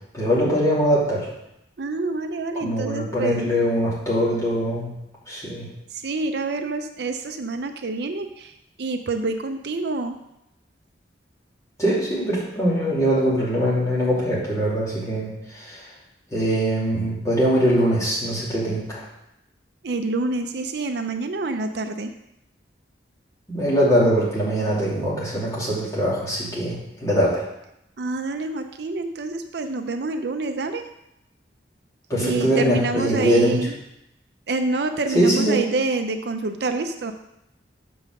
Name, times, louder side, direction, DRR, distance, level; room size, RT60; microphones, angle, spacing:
voice 1, 0.1-1.3 2.6-4.9 5.3-5.7 11.8-15.9 16.3-19.0 23.5-27.4 32.1-33.6 35.1-35.6, equal, 15° left, -7 dB, 2.7 m, -22 dB
voice 2, 1.8-3.5 5.9-8.5 8.8-10.2 19.8-22.1 28.0-30.8 32.2-33.7 34.5-37.1, right 3 dB, 60° right, 7 dB, 0.5 m, -27 dB
6.4 x 5.5 x 6.4 m, 0.85 s
head